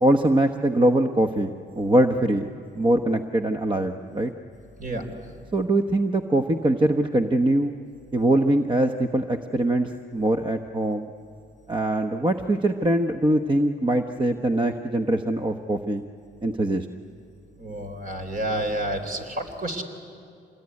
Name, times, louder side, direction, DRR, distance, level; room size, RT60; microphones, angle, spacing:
voice 1, 0.0-4.3 5.5-7.7 8.1-11.1 11.7-16.0 16.4-16.9, right 1 dB, 25° right, 6 dB, 1.0 m, -22 dB
voice 2, 17.6-19.8, right 1 dB, 45° right, 5 dB, 4.0 m, -29 dB
26.0 x 20.5 x 9.8 m, 2.5 s
cardioid pair, 90°, 20 cm